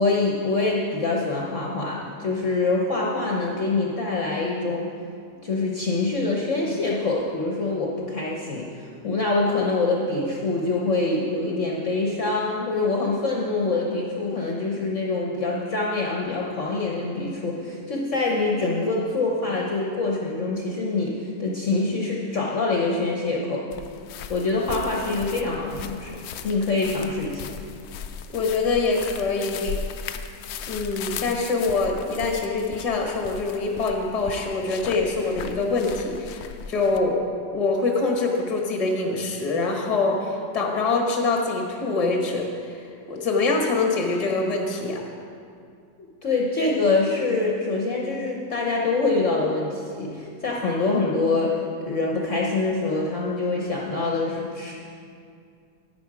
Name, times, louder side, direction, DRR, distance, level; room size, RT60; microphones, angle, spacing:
voice 1, 0.0-4.9 5.4-23.6 24.3-26.2 26.4-27.5 46.0-51.6 51.8-54.7, left 3 dB, 50° left, -2 dB, 1.1 m, -25 dB
sound 1, 23.7-37.0, left 7 dB, 70° left, 0.9 m, -37 dB
voice 2, 28.3-29.8 30.7-37.2 37.5-45.0, left 3 dB, 25° left, 1 dB, 1.1 m, -24 dB
10.5 x 9.2 x 4.8 m, 2.3 s
omnidirectional pair, 1.9 m